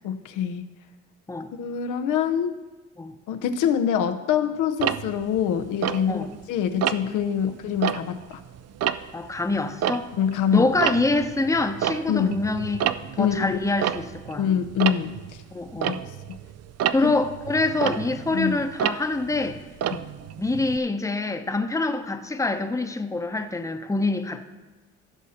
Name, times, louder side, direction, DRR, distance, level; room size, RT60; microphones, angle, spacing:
voice 1, 0.0-0.7 1.6-2.6 3.3-8.4 10.2-10.7 12.1-12.4 13.2-13.6 14.4-15.2 15.8-16.0 17.0-17.1 18.3-18.6 19.9-20.0, left 8 dB, 90° left, 7 dB, 0.8 m, -25 dB
Tick-tock, 4.8-6.4 6.8-7.2 7.7-10.4 10.7-20.8, right 9 dB, 55° right, 0.5 m, -30 dB
voice 2, 9.1-10.1 10.5-12.8 13.2-14.5 15.5-15.9 16.9-19.6 20.4-24.4, left 3 dB, 10° left, 7 dB, 0.8 m, -25 dB
15.5 x 6.3 x 4.3 m, 1.2 s
cardioid pair, 90°, 30 cm